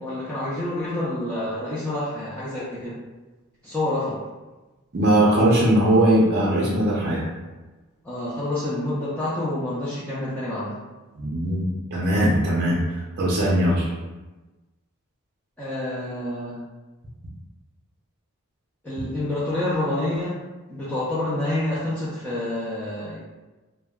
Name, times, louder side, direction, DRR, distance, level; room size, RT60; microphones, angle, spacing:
voice 1, 0.0-3.0 3.6-4.2 8.0-10.8 15.6-16.6 18.8-20.4 20.7-23.2, left 1 dB, 5° left, -11 dB, 0.4 m, -28 dB
voice 2, 4.9-7.2 11.2-11.6 11.9-12.8 13.2-13.9, right 1 dB, 45° right, -5 dB, 0.5 m, -20 dB
2.1 x 2.1 x 3.4 m, 1.2 s
head